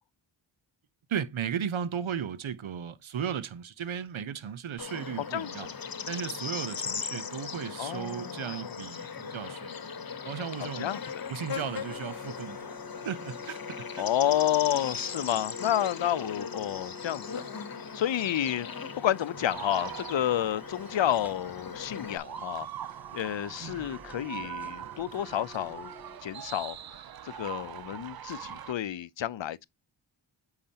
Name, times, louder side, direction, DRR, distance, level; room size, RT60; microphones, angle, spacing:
voice 1, 1.1-5.7 6.1-9.8 10.2-10.9 11.3-12.7 13.0-14.1 23.5-23.9, right 8 dB, 75° right, 0.9 m, -35 dB
Bird / Insect, 4.8-22.2, left 6 dB, 45° left, 1.0 m, -39 dB
voice 2, 7.8-8.4 10.8-11.0 14.0-17.4 17.9-18.7 19.0-22.7 23.1-25.9 26.2-26.8 27.4-29.7, left 11 dB, 65° left, 0.6 m, -30 dB
sound 1, 11.5-26.2, left 2 dB, 5° right, 1.3 m, -52 dB
sound 2, 19.3-28.7, right 10 dB, 50° right, 0.5 m, -42 dB
8.6 x 4.9 x 2.8 m
cardioid pair, 45°, 48 cm